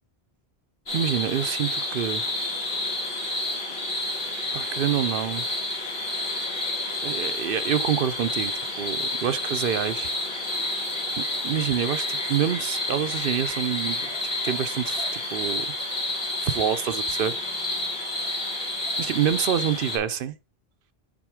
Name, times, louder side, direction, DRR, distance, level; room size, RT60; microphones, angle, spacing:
sound 1, 0.9-20.0, left 2 dB, 70° left, 2.3 m, -29 dB
voice 1, 0.9-2.2 4.5-5.5 7.0-8.5 8.8-10.1 11.2-14.1 14.4-15.7 16.4-17.3 19.0-20.4, right 9 dB, 65° right, 0.7 m, -27 dB
6.0 x 4.3 x 4.8 m
omnidirectional pair, 1.0 m